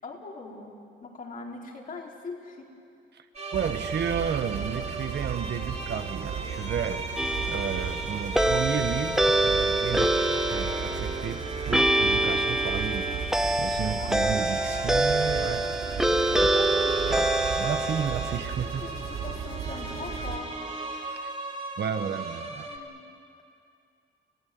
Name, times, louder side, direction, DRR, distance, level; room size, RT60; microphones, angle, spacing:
voice 1, 0.0-2.7 13.8-14.7 16.2-17.1 18.5-20.5 22.7-23.1, left 3 dB, 45° left, -2 dB, 4.9 m, -42 dB
sound 1, 3.3-22.8, right 3 dB, 35° right, 3.3 m, -36 dB
voice 2, 3.5-11.4 11.7-15.7 17.6-18.8 21.0-21.2 21.8-22.8, right 7 dB, 60° right, 8 dB, 1.4 m, -32 dB
sound 2, 3.5-20.4, right 7 dB, 85° right, 3.7 m, -36 dB
sound 3, 7.2-18.4, right 1 dB, ahead, 1.2 m, -26 dB
30.0 x 16.0 x 9.6 m, 2.4 s
cardioid pair, 90°, 20 cm